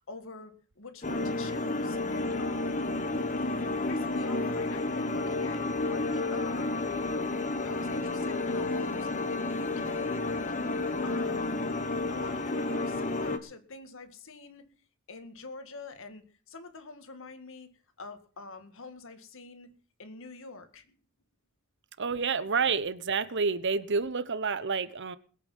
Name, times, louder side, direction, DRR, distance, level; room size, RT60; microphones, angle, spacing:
voice 1, 0.1-3.0 3.8-5.6 5.9-6.9 7.6-11.7 12.1-14.7 15.1-19.7 20.0-21.0, left 3 dB, 65° left, 2.0 m, -46 dB
sound 1, 1.0-13.4, left 2 dB, 35° left, 1.3 m, -31 dB
voice 2, 22.0-25.2, right 5 dB, 60° right, 1.0 m, -29 dB
21.0 x 8.6 x 5.6 m
head